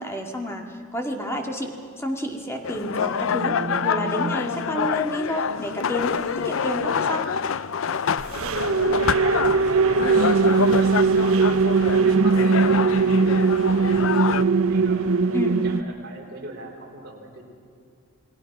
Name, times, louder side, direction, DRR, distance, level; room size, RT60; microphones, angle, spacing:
voice 1, 0.0-7.3 15.3-15.6, left 1 dB, 10° left, 2 dB, 2.1 m, -30 dB
sound 1, 2.6-14.4, left 7 dB, 65° left, 0.5 m, -27 dB
sound 2, 3.3-5.1 8.2-15.8, right 4 dB, 75° right, 0.6 m, -21 dB
voice 2, 8.7-9.2 9.5-11.6 12.0-13.4 13.8-17.5, right 1 dB, 50° right, 0 dB, 4.1 m, -40 dB
28.5 x 20.0 x 6.1 m, 2.4 s
head